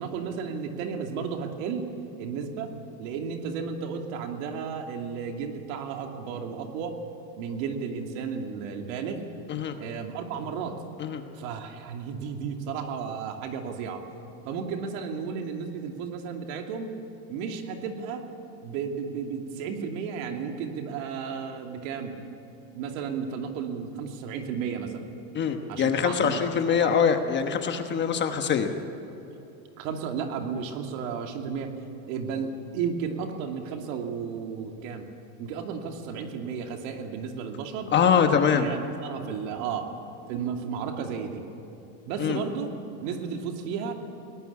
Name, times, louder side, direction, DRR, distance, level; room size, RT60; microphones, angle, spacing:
voice 1, 0.0-1.9 2.2-2.7 3.0-7.0 7.4-9.3 9.8-10.8 11.4-14.0 14.4-16.9 17.3-18.3 18.6-22.1 22.7-25.1 25.7-26.3 26.8-27.0 29.8-31.7 32.1-35.1 35.4-37.9 38.5-39.9 40.3-41.4 42.1-42.7 43.0-43.9, right 6 dB, 60° right, 4 dB, 2.7 m, -33 dB
voice 2, 25.3-28.7 37.9-38.7 42.2-42.4, left 7 dB, 25° left, 6 dB, 1.1 m, -23 dB
22.0 x 18.5 x 8.4 m, 3.0 s
supercardioid pair, 155°, 46 cm